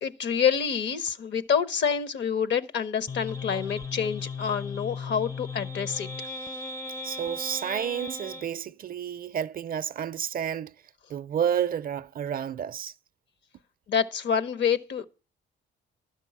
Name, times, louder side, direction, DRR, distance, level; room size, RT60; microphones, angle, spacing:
voice 1, 0.0-6.1 13.9-15.0, left 7 dB, 65° left, 0.9 m, -27 dB
sound 1, 3.1-8.5, left 3 dB, 15° left, 0.5 m, -36 dB
voice 2, 7.0-10.7 11.1-12.9, right 9 dB, 45° right, 0.5 m, -30 dB
12.0 x 5.3 x 8.5 m
cardioid pair, 90°, 20 cm